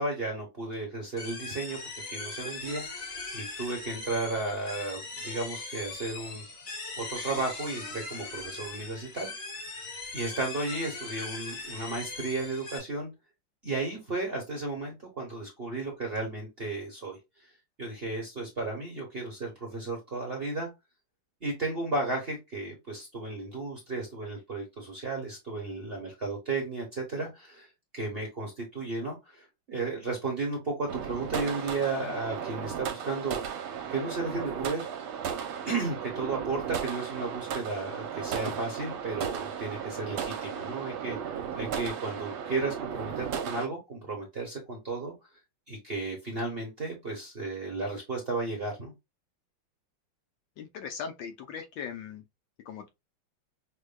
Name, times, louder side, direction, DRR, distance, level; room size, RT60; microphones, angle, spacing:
voice 1, 0.0-1.8 2.1-6.4 7.0-9.3 10.1-13.1 13.6-17.2 17.8-20.7 21.4-27.7 27.9-33.4 33.9-34.9 35.6-45.1 45.7-48.9, right 3 dB, 40° right, 0.9 m, -34 dB
sound 1, 1.2-12.8, left 3 dB, 45° left, 2.1 m, -40 dB
sound 2, 30.9-43.7, right 8 dB, 80° right, 1.5 m, -35 dB
voice 2, 50.6-52.2 52.7-52.9, left 7 dB, 75° left, 1.2 m, -39 dB
6.2 x 2.2 x 2.2 m
omnidirectional pair, 2.3 m